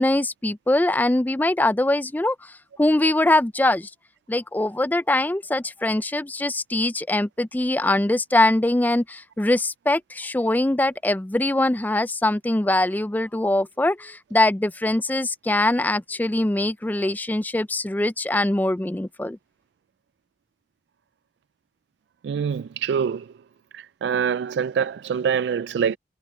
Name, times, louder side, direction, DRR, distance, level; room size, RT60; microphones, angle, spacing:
voice 1, 0.0-2.4 2.8-3.9 4.3-19.4, left 1 dB, 10° left, 0.4 m, -22 dB
voice 2, 22.2-23.3 23.7-26.0, right 7 dB, 75° right, 0.3 m, -25 dB
head